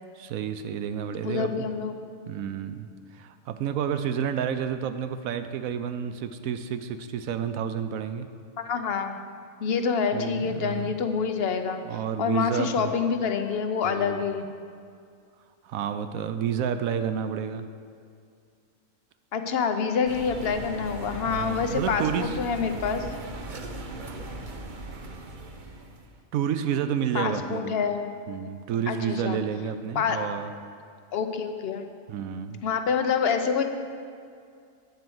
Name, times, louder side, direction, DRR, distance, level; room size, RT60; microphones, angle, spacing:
voice 1, 0.2-1.7 2.3-8.3 10.1-11.0 11.8-12.9 13.8-14.2 15.6-17.7 21.2-22.4 26.3-27.8 28.3-30.5 32.1-32.6, right 8 dB, 80° right, 9 dB, 1.0 m, -30 dB
voice 2, 1.2-1.9 8.6-9.2 9.6-11.8 12.2-14.5 19.3-23.1 27.1-28.1 28.9-29.4 29.9-30.2 31.1-31.9 32.6-33.6, left 6 dB, 55° left, 7 dB, 0.7 m, -27 dB
sound 1, 20.1-26.2, right 2 dB, 45° right, 0.7 m, -38 dB
9.5 x 4.6 x 7.7 m, 2.3 s
omnidirectional pair, 1.4 m